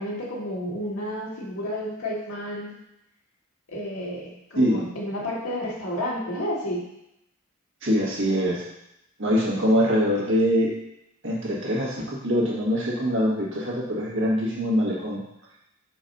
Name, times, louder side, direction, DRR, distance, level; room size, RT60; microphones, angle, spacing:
voice 1, 0.0-2.7 3.7-6.9, equal, 90° left, -4 dB, 1.9 m, -31 dB
voice 2, 7.8-8.7 9.2-10.7 11.2-15.2, equal, 60° right, -5 dB, 1.8 m, -23 dB
4.7 x 4.1 x 5.4 m, 0.83 s
head